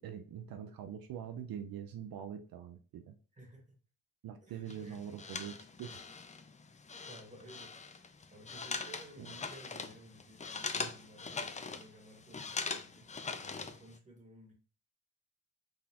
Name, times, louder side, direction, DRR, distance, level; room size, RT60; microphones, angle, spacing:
voice 1, 0.0-3.2 4.2-6.0 9.2-9.3 10.8-10.9, right 9 dB, 80° right, 7 dB, 0.6 m, -44 dB
voice 2, 3.3-3.7 4.4-5.1 7.1-14.5, equal, 20° right, -1 dB, 1.8 m, -56 dB
sound 1, 4.7-14.0, left 4 dB, 20° left, 0.4 m, -42 dB
4.0 x 3.6 x 2.9 m, 0.36 s
cardioid pair, 105°, 35 cm